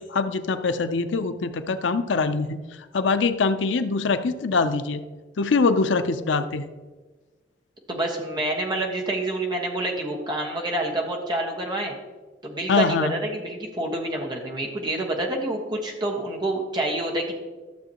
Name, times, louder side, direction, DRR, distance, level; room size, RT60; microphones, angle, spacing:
voice 1, 0.0-2.6 2.9-5.0 5.4-6.7 12.7-13.2, left 4 dB, 85° left, 10 dB, 0.5 m, -23 dB
voice 2, 7.9-11.9 12.4-17.3, right 1 dB, 25° right, 0 dB, 1.3 m, -27 dB
12.5 x 6.9 x 2.9 m, 1.3 s
head